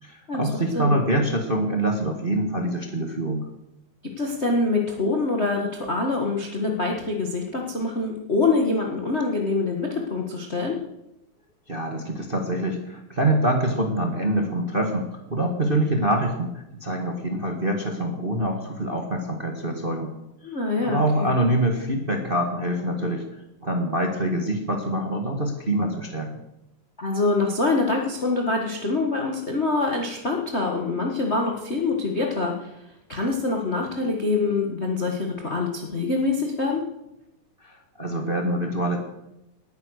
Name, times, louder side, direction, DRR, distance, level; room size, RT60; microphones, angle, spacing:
voice 1, 0.0-3.5 11.7-16.5 16.8-20.1 20.8-23.2 23.6-26.3 37.6-39.0, right 1 dB, 25° right, 3 dB, 1.2 m, -25 dB
voice 2, 4.2-10.8 20.4-21.3 27.0-32.7 33.1-36.8, left 3 dB, 30° left, 1 dB, 1.4 m, -25 dB
19.0 x 9.9 x 6.6 m, 0.89 s
omnidirectional pair, 3.5 m